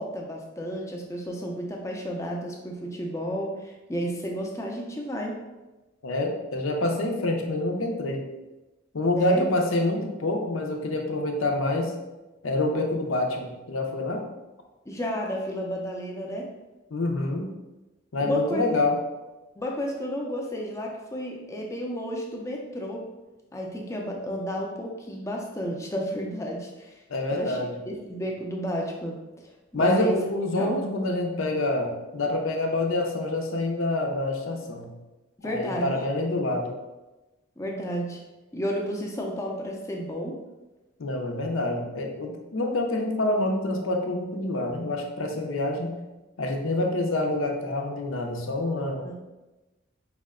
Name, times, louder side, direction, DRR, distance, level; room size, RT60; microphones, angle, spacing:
voice 1, 0.0-5.4 9.2-9.4 14.9-16.5 18.2-18.7 19.6-23.0 23.5-27.0 27.3-27.6 27.9-30.2 30.6-30.8 35.4-35.9 37.6-38.2 38.5-40.4 49.0-49.1, equal, 15° left, -1 dB, 0.5 m, -32 dB
voice 2, 6.0-8.3 8.9-11.9 12.4-14.2 16.9-17.5 18.1-19.0 27.1-27.7 29.7-35.0 35.4-36.7 41.0-45.9 46.4-49.1, left 2 dB, 80° left, 2 dB, 0.6 m, -27 dB
4.8 x 2.1 x 3.6 m, 1.1 s
head